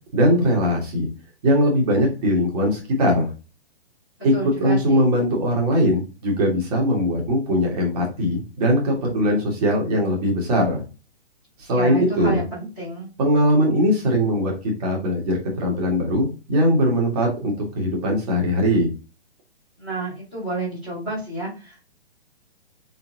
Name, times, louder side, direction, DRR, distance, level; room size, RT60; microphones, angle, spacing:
voice 1, 0.1-1.1 1.4-3.3 4.2-10.8 11.6-12.4 13.2-18.9, equal, 40° right, -1 dB, 1.9 m, -20 dB
voice 2, 4.3-5.1 11.7-13.1 19.8-21.8, right 2 dB, ahead, -18 dB, 0.3 m, -30 dB
4.1 x 3.7 x 2.7 m, 0.31 s
hypercardioid pair, 155°, 32 cm